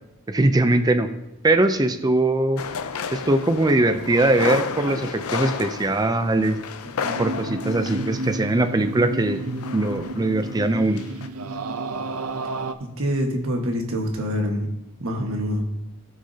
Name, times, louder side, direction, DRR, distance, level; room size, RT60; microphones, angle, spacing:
voice 1, 0.3-1.1 1.4-2.6 3.1-6.6 7.2-9.4 9.7-11.0, right 2 dB, 20° right, 8 dB, 0.5 m, -21 dB
sound 1, 2.6-10.7 11.0-11.3, left 6 dB, 90° left, 0.6 m, -32 dB
voice 2, 6.8-7.2 12.8-14.7 15.0-15.6, equal, 65° right, 2 dB, 1.5 m, -26 dB
sound 2, 7.2-12.7, right 2 dB, 85° right, 0.6 m, -31 dB
16.5 x 6.4 x 2.8 m, 0.90 s
head